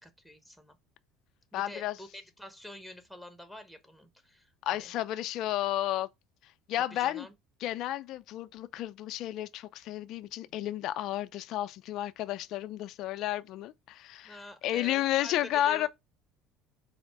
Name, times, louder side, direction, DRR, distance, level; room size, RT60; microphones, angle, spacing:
voice 1, 0.0-0.8 1.5-4.9 6.7-7.3 14.2-15.9, left 1 dB, ahead, 0.8 m, -47 dB
voice 2, 1.5-2.0 4.6-6.1 6.7-7.3 7.6-14.4 14.6-15.9, left 13 dB, 60° left, 0.4 m, -32 dB
4.0 x 2.1 x 4.5 m
hypercardioid pair, 65°, 0 cm